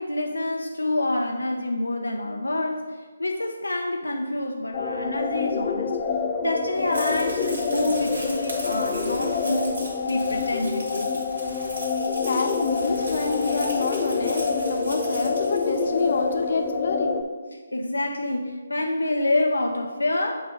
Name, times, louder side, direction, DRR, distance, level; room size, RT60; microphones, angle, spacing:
voice 1, 0.0-6.0 6.4-11.3 17.7-20.3, left 1 dB, 85° left, 2 dB, 0.5 m, -27 dB
sound 1, 4.7-17.2, left 5 dB, 30° left, 0.4 m, -27 dB
sound 2, 6.7-16.3, right 1 dB, 65° right, 1.9 m, -38 dB
voice 2, 12.2-17.1, left 3 dB, 60° left, 3 dB, 0.8 m, -27 dB
7.7 x 2.7 x 5.0 m, 1.5 s
figure-of-eight pair, 145°, 0 cm